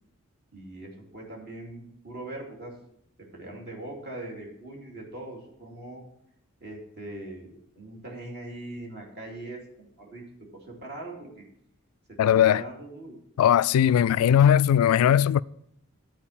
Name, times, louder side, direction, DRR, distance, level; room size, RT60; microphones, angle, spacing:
voice 1, 0.5-2.7 3.2-6.0 6.6-7.5 7.8-10.2 10.5-11.4 12.1-13.2, right 1 dB, 50° right, 2.6 m, -41 dB
voice 2, 12.2-12.6 13.4-15.4, left 9 dB, 85° left, 0.3 m, -19 dB
11.5 x 4.5 x 7.2 m
head